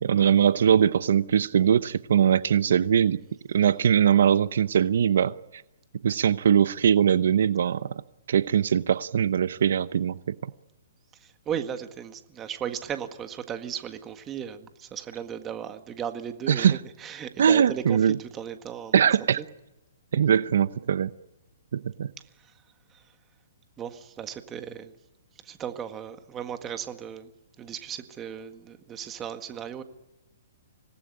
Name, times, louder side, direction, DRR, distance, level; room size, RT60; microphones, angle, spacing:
voice 1, 0.0-3.2 3.5-5.3 6.0-7.9 8.3-10.5 16.5-16.8 17.4-18.2 18.9-19.4 20.1-21.1 21.7-22.1, right 8 dB, 70° right, 0.8 m, -21 dB
voice 2, 11.2-19.1 19.4-19.5 22.9-23.0 23.8-24.9 25.4-27.3 27.6-29.8, right 8 dB, 15° right, 1.7 m, -36 dB
26.0 x 19.0 x 9.8 m
hypercardioid pair, 160°, 0 cm